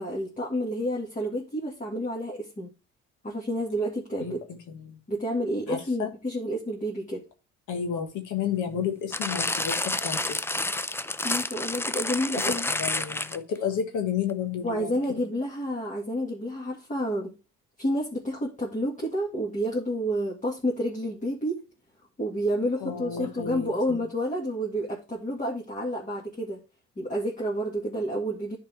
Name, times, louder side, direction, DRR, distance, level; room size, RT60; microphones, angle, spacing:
voice 1, 0.0-2.7 3.2-4.4 5.1-7.2 11.2-12.7 14.6-17.3 17.8-21.6 22.2-26.6 27.0-28.6, equal, 25° left, -3 dB, 2.0 m, -29 dB
voice 2, 4.2-5.0 5.7-6.1 7.7-10.4 12.8-15.2 22.8-24.0, left 7 dB, 85° left, 4 dB, 1.5 m, -32 dB
sound 1, 9.1-13.6 14.3-14.4, left 2 dB, 10° left, 0.4 m, -29 dB
10.5 x 4.6 x 3.4 m, 0.32 s
cardioid pair, 90°, 30 cm